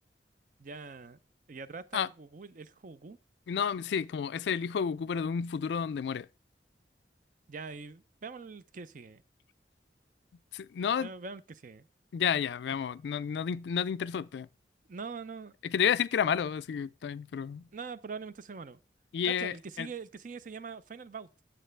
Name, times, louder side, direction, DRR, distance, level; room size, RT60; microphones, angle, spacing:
voice 1, 0.6-1.2 1.5-3.2 7.5-9.2 11.0-11.9 14.9-15.5 17.7-18.8 19.2-21.3, right 4 dB, 50° right, 0.5 m, -43 dB
voice 2, 3.5-6.3 10.5-11.1 12.1-14.5 15.6-17.7 19.1-19.9, left 7 dB, 75° left, 0.3 m, -31 dB
8.9 x 7.5 x 3.3 m
head